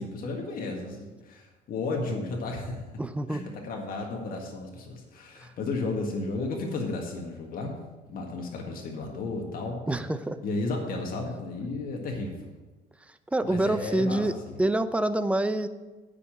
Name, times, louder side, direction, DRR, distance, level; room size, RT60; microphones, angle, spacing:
voice 1, 0.0-2.8 3.3-7.8 8.1-9.8 10.4-12.5 13.4-14.6, left 3 dB, 60° left, 1 dB, 1.8 m, -33 dB
voice 2, 3.0-3.4 9.9-10.4 13.3-14.3 14.6-15.7, right 1 dB, 5° right, 11 dB, 0.6 m, -26 dB
9.6 x 5.1 x 7.7 m, 1.2 s
cardioid pair, 110°, 17 cm